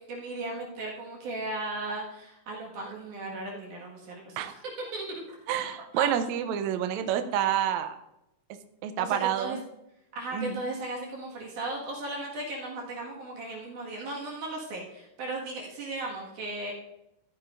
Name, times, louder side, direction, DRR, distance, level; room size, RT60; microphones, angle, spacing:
voice 1, 0.1-4.6 4.9-5.4 5.9-6.1 9.0-9.6 10.1-16.7, right 2 dB, 65° right, -2 dB, 3.2 m, -36 dB
voice 2, 5.5-7.9 8.8-9.6 10.3-10.6, right 10 dB, 90° right, 9 dB, 1.6 m, -28 dB
13.0 x 9.6 x 2.6 m, 0.86 s
omnidirectional pair, 4.1 m